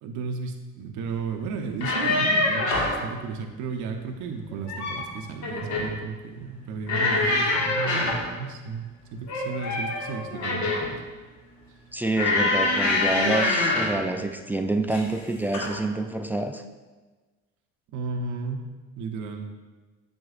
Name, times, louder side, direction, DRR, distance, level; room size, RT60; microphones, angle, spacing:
voice 1, 0.0-8.8 9.1-10.8 17.9-18.6 19.0-19.4, right 5 dB, 70° right, 3 dB, 0.8 m, -33 dB
sound 1, 1.7-3.0 4.5-5.1 5.4-5.9 6.9-8.3 9.3-11.0 12.1-14.0 14.9-15.2 15.5-15.7, left 2 dB, 65° left, 1.7 m, -25 dB
voice 2, 11.9-16.6, right 2 dB, 5° right, 6 dB, 0.3 m, -27 dB
7.9 x 7.3 x 2.4 m, 1.3 s
cardioid pair, 115°, 31 cm